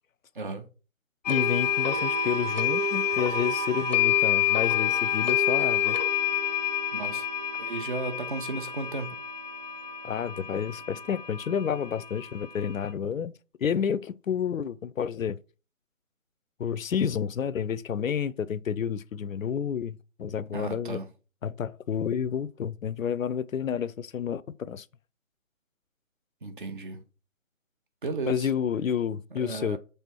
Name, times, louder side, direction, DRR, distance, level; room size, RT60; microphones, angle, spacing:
sound 1, 1.2-12.9, left 8 dB, 35° left, 0.6 m, -28 dB
voice 1, 1.3-6.0 10.0-13.3 13.6-15.4 16.6-21.0 21.4-24.8 28.3-29.8, left 8 dB, 85° left, 0.6 m, -30 dB
voice 2, 6.9-7.3 7.6-9.1 20.5-21.1 26.4-27.0 28.0-28.5 29.3-29.8, right 3 dB, 40° right, 1.0 m, -34 dB
7.0 x 3.4 x 4.3 m
figure-of-eight pair, 160°, 39 cm